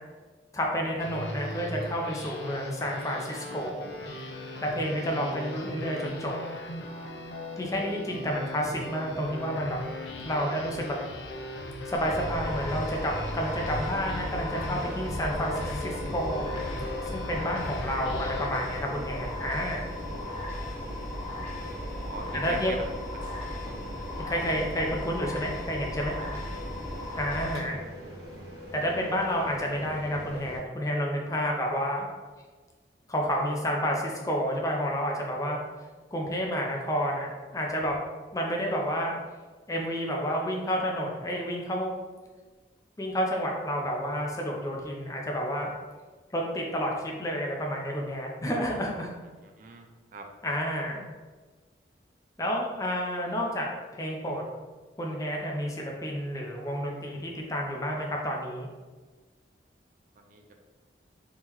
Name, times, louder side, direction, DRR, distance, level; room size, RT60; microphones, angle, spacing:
voice 1, 0.5-3.8 4.6-6.3 7.6-9.8 10.2-11.0 11.9-16.5 17.1-19.9 22.3-22.7 24.1-26.2 27.2-27.8 28.7-32.1 33.1-35.6 36.1-37.9 38.3-39.1 39.7-41.9 43.0-45.7 46.3-49.1 50.4-51.0 52.4-53.7 53.9-54.4 55.0-58.7, equal, 20° left, 0 dB, 0.5 m, -30 dB
sound 1, 1.0-18.5, left 1 dB, 70° left, 0.5 m, -38 dB
sound 2, 11.9-27.6, left 1 dB, 45° left, 0.9 m, -37 dB
sound 3, 12.3-30.6, equal, 65° right, 1.3 m, -43 dB
voice 2, 21.9-22.9 26.2-26.4 49.6-49.9 50.1-50.3 60.2-60.6, right 2 dB, 45° right, 3 dB, 0.3 m, -40 dB
3.7 x 2.9 x 3.0 m, 1.4 s
head